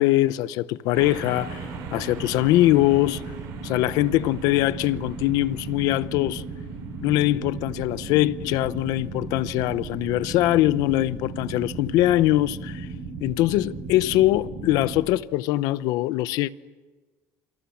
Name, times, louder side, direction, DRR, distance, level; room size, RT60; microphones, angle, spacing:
voice 1, 0.0-3.2 3.6-6.4 7.0-12.9 13.2-16.5, left 16 dB, 80° left, 0.8 m, -22 dB
sound 1, 0.9-15.0, right 4 dB, 75° right, 6.7 m, -36 dB
28.0 x 25.5 x 7.2 m
cardioid pair, 180°, 6 cm